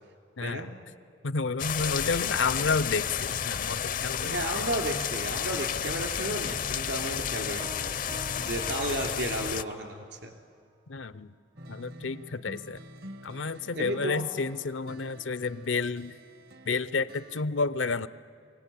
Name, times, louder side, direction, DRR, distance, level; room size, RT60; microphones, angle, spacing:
voice 1, 0.4-0.8 1.2-4.7 10.9-11.3 11.7-12.8 13.2-16.1 16.6-18.1, left 4 dB, 85° left, 16 dB, 0.7 m, -30 dB
sound 1, 1.6-9.6, left 8 dB, 45° left, 0.5 m, -31 dB
voice 2, 4.2-8.1 8.4-10.3 13.7-14.2, right 1 dB, 70° right, 4 dB, 3.0 m, -33 dB
Piano, 7.6-10.0, right 3 dB, 20° right, 0.5 m, -47 dB
sound 2, 11.6-17.4, equal, 55° right, 0.8 m, -48 dB
24.0 x 18.0 x 8.4 m, 2.3 s
head